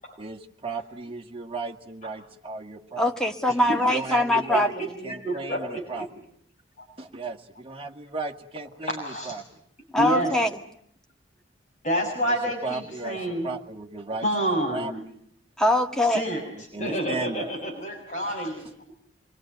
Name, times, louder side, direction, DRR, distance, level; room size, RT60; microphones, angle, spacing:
voice 1, 0.2-3.1 3.8-4.7 5.0-6.1 7.0-9.4 12.6-13.2 13.4-14.3 14.7-14.9 16.7-17.5, right 3 dB, 30° right, 3 dB, 1.9 m, -35 dB
voice 2, 3.0-4.7 5.0-5.1 9.9-10.6 15.6-16.2, left 1 dB, 5° left, 4 dB, 1.7 m, -22 dB
voice 3, 3.6-6.0 6.8-6.9 8.8-9.4 10.0-10.3 11.8-13.5 14.2-15.0 16.1-16.4 16.8-18.7, right 1 dB, 45° left, 1 dB, 6.1 m, -29 dB
27.0 x 22.0 x 9.2 m, 0.67 s
head